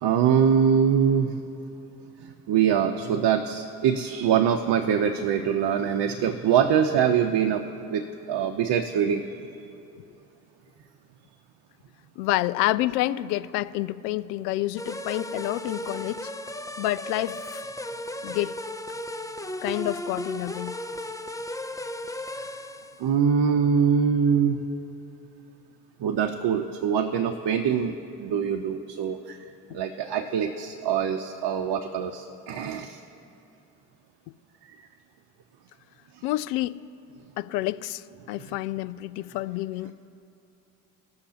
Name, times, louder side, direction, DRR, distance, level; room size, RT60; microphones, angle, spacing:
voice 1, 0.0-1.3 2.2-9.2 23.0-24.7 26.0-29.4 29.7-33.0, right 7 dB, 55° right, 5 dB, 0.9 m, -24 dB
voice 2, 12.2-16.3 16.8-17.6 18.2-18.5 19.6-20.8 36.2-36.8 37.4-39.9, left 16 dB, 80° left, 15 dB, 0.5 m, -28 dB
sound 1, 14.8-23.1, left 1 dB, 5° left, 0.6 m, -35 dB
20.0 x 6.7 x 2.9 m, 2.9 s
hypercardioid pair, 45°, 47 cm